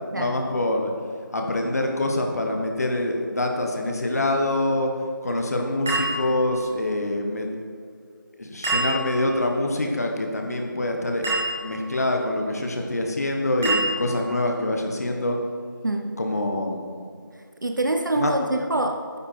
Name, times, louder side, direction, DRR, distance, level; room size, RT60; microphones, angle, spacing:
voice 1, 0.1-0.9 1.3-4.9 5.2-7.5 8.4-11.3 11.6-15.4 16.2-17.0 18.2-18.3, left 1 dB, 45° left, 2 dB, 1.5 m, -25 dB
Elevator Bells, 5.9-6.8 8.6-9.4 11.2-11.9 13.6-14.4, right 2 dB, 5° right, 0.5 m, -27 dB
voice 2, 17.6-19.2, right 2 dB, 60° right, 5 dB, 1.0 m, -25 dB
11.5 x 9.7 x 4.6 m, 2.1 s
figure-of-eight pair, 170°, 12 cm